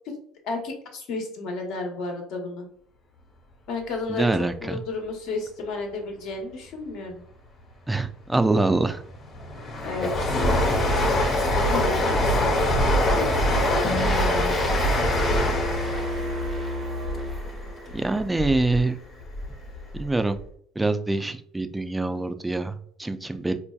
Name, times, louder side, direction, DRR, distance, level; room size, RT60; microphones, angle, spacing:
voice 1, 0.4-2.7 3.7-4.3 4.6-7.2 9.8-10.1 11.5-14.8, left 3 dB, 70° left, 2 dB, 1.0 m, -32 dB
voice 2, 4.1-4.8 7.9-9.0 17.9-19.0 20.0-20.4 20.8-23.6, right 2 dB, 10° right, 9 dB, 0.3 m, -25 dB
Train, 8.6-18.8 19.2-20.1 20.4-20.5, left 1 dB, 45° left, 1.0 m, -24 dB
sound 1, 13.8-18.1, equal, 15° left, 0.7 m, -36 dB
sound 2, 15.0-18.0, left 1 dB, 75° right, 0.5 m, -31 dB
4.2 x 2.7 x 2.3 m, 0.62 s
supercardioid pair, 90°, 0 cm